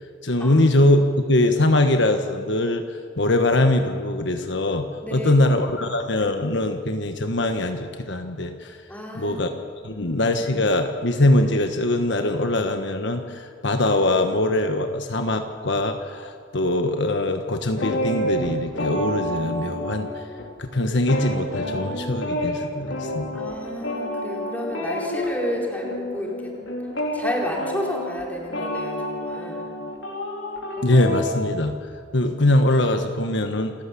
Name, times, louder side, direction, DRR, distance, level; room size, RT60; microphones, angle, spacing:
voice 1, 0.2-2.8 3.2-8.8 9.1-9.5 9.8-20.2 20.6-23.4 30.8-31.7 32.1-33.7, left 1 dB, 65° left, 6 dB, 1.3 m, -22 dB
voice 2, 5.0-5.5 8.9-9.4 9.8-10.1 23.3-26.5 27.1-29.7, left 1 dB, 10° left, -1 dB, 4.3 m, -31 dB
sound 1, 17.7-20.5 20.7-31.3, equal, 90° left, 4.1 m, -29 dB
28.5 x 14.5 x 8.4 m, 2.1 s
head